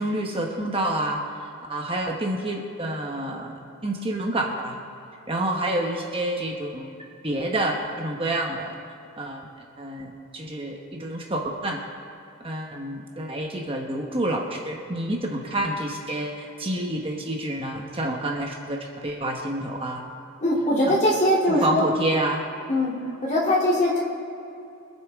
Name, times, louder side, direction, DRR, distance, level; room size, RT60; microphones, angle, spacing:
voice 1, 0.0-4.8 5.3-7.0 7.2-8.7 9.2-9.5 9.8-11.8 12.4-20.0 20.8-21.0 21.5-22.4, right 1 dB, 25° right, 0 dB, 1.1 m, -28 dB
voice 2, 20.4-21.9 22.7-22.9 23.2-24.0, left 1 dB, 35° left, -5 dB, 2.8 m, -21 dB
25.0 x 8.7 x 3.6 m, 2.7 s
head